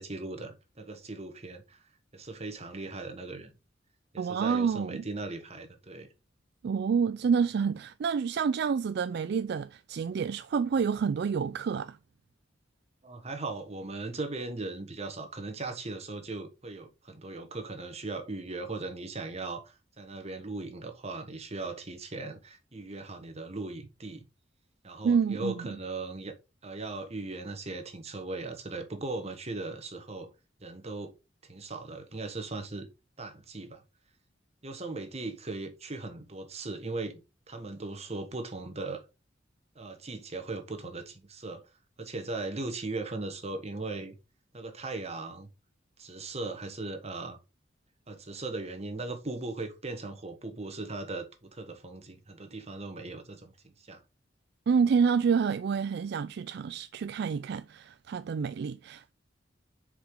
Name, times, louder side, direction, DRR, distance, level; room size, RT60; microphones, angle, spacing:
voice 1, 0.0-1.8 2.1-3.5 4.1-6.1 13.0-24.2 24.8-26.4 26.6-30.3 30.6-31.1 31.4-32.9 33.2-33.8 34.6-37.2 37.5-39.0 39.7-41.6 42.0-44.1 44.5-45.5 46.0-47.4 48.1-54.0, right 3 dB, 35° right, 1.4 m, -38 dB
voice 2, 4.2-5.0 6.6-12.0 25.0-25.7 54.7-59.1, right 6 dB, 60° right, 0.3 m, -28 dB
6.6 x 5.0 x 3.8 m
head